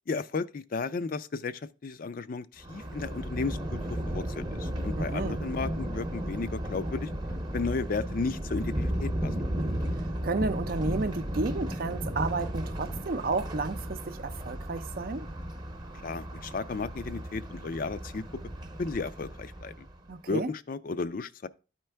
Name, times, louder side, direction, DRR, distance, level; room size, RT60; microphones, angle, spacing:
voice 1, 0.1-7.1 7.5-9.4 16.0-18.2 18.8-19.7 20.3-21.5, left 4 dB, 50° left, 0.4 m, -34 dB
Thunder, 2.6-20.0, equal, 25° right, 0.8 m, -34 dB
voice 2, 5.0-5.4 10.2-15.3 20.1-20.5, right 3 dB, 55° right, 0.5 m, -32 dB
12.5 x 4.5 x 3.4 m
head